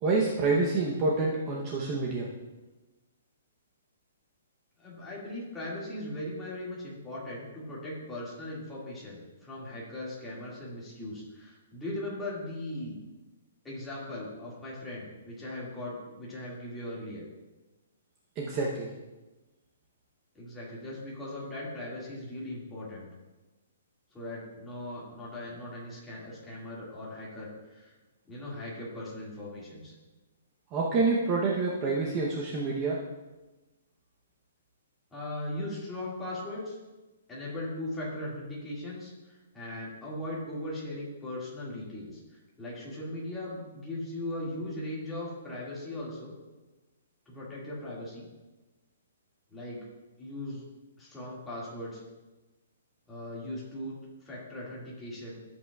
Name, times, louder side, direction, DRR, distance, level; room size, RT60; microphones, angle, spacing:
voice 1, 0.0-2.3 18.4-18.9 30.7-33.0, right 3 dB, 20° right, -3 dB, 0.8 m, -27 dB
voice 2, 4.8-13.0 13.6-17.2 20.4-23.1 24.1-27.9 28.3-29.9 35.1-36.8 37.3-42.2 42.6-46.3 47.3-48.3 49.5-49.8 50.2-50.6 51.0-52.0 53.1-54.0 54.2-55.4, left 1 dB, 5° left, -7 dB, 2.1 m, -39 dB
13.5 x 7.9 x 2.4 m, 1.1 s
hypercardioid pair, 175°, 0 cm